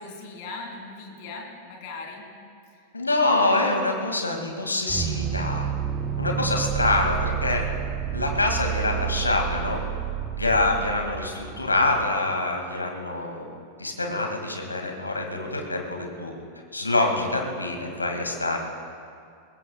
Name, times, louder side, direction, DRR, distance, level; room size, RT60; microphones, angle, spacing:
voice 1, 0.0-2.3 7.0-7.7, left 3 dB, 45° left, 0 dB, 3.2 m, -40 dB
voice 2, 2.9-5.7 6.2-7.6 8.1-9.8 10.4-13.5 13.8-16.3 16.7-18.6, left 2 dB, 80° left, 2 dB, 2.0 m, -25 dB
sound 1, 4.9-12.1, right 9 dB, 30° right, 0.8 m, -30 dB
23.0 x 20.0 x 2.3 m, 2.3 s
figure-of-eight pair, 90°, 0 cm